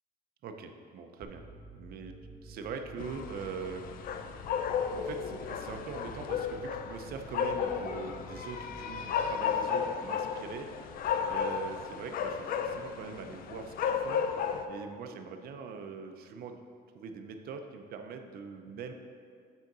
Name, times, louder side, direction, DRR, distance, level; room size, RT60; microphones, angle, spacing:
voice 1, 0.4-1.4 1.7-2.2 2.4-3.9 4.9-10.7 11.3-14.3 14.7-16.6 16.9-18.9, right 5 dB, 65° right, 5 dB, 0.7 m, -42 dB
sound 1, 1.2-10.2, right 2 dB, 10° left, 0.9 m, -51 dB
sound 2, 3.0-14.7, left 7 dB, 60° left, 0.5 m, -34 dB
8.1 x 3.9 x 6.0 m, 2.2 s
cardioid pair, 110°, 17 cm